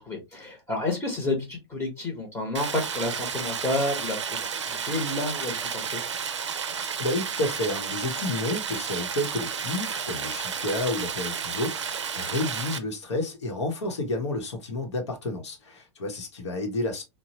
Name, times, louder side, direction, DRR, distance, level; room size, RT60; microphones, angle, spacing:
voice 1, 0.0-6.0, left 2 dB, 20° left, 0.9 m, -30 dB
Stream, 2.5-12.8, right 6 dB, 90° right, 0.4 m, -32 dB
voice 2, 7.0-17.0, left 2 dB, 75° left, 1.0 m, -30 dB
2.9 x 2.2 x 2.8 m
hypercardioid pair, 95°, 15 cm